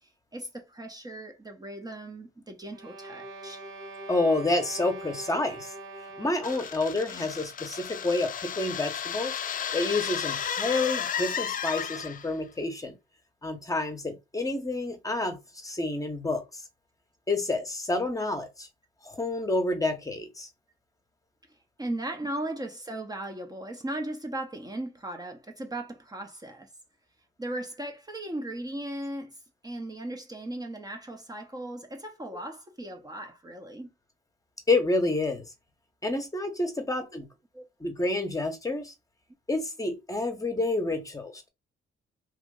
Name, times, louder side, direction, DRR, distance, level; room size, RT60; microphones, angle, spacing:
voice 1, 0.3-3.6 21.8-26.7 27.4-29.4 29.6-33.9 37.5-37.6, right 1 dB, 20° right, 0.8 m, -37 dB
sound 1, 2.7-6.9, right 2 dB, 85° right, 1.2 m, -43 dB
voice 2, 4.1-5.7 6.2-9.4 9.7-12.9 13.4-16.6 17.3-18.7 19.0-20.5 34.7-35.4 36.0-37.3 37.8-38.9 39.5-41.5, left 2 dB, 15° left, 0.9 m, -29 dB
sound 2, 6.4-12.4, left 8 dB, 45° left, 0.4 m, -33 dB
3.1 x 2.4 x 3.7 m
cardioid pair, 90°, 20 cm